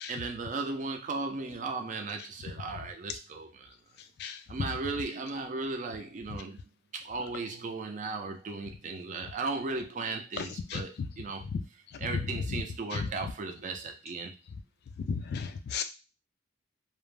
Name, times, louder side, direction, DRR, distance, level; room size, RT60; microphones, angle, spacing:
voice 1, 0.1-3.7 4.5-6.6 6.9-11.4 12.0-14.4, right 3 dB, 40° right, 4 dB, 0.4 m, -36 dB
voice 2, 15.1-15.8, left 6 dB, 55° left, 9 dB, 0.3 m, -34 dB
2.4 x 2.0 x 3.2 m, 0.30 s
head